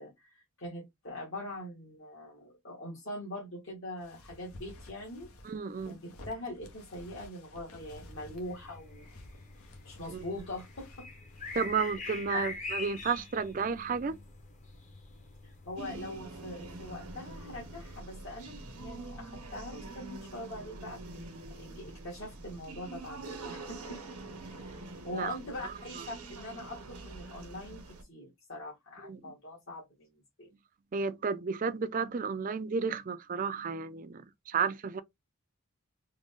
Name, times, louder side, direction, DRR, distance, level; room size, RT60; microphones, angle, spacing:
voice 1, 0.0-5.3 5.8-9.1 9.8-11.1 12.3-12.4 15.4-21.0 21.5-24.0 24.5-24.8 25.0-27.8 28.1-30.5, left 1 dB, 60° left, 1.6 m, -43 dB
sound 1, 4.0-12.0, left 1 dB, 80° left, 0.9 m, -53 dB
voice 2, 5.4-6.0 10.1-10.2 11.6-14.2 25.1-25.4 25.6-25.7 29.0-29.3 30.9-35.0, right 5 dB, 35° right, 0.4 m, -32 dB
sound 2, 7.8-18.0, left 4 dB, 35° left, 0.8 m, -45 dB
sound 3, 15.8-28.0, right 2 dB, 90° right, 1.0 m, -45 dB
3.7 x 2.1 x 3.5 m
head